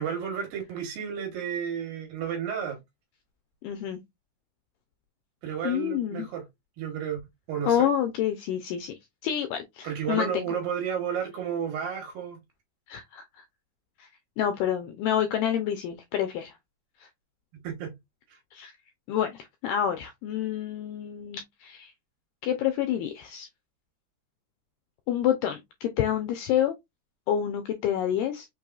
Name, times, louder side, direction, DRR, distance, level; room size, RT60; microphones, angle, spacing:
voice 1, 0.0-2.8 5.4-6.4 6.8-7.2 7.5-7.9 9.8-12.4 17.6-17.9, right 8 dB, 70° right, 2.7 m, -32 dB
voice 2, 3.6-4.0 5.6-6.3 7.7-10.5 12.9-13.4 14.0-14.1 14.4-16.5 17.0-17.1 18.5-18.7 19.1-21.9 22.4-23.5 25.1-26.8 27.3-28.5, left 10 dB, 85° left, 1.9 m, -28 dB
6.3 x 3.0 x 2.3 m
omnidirectional pair, 4.5 m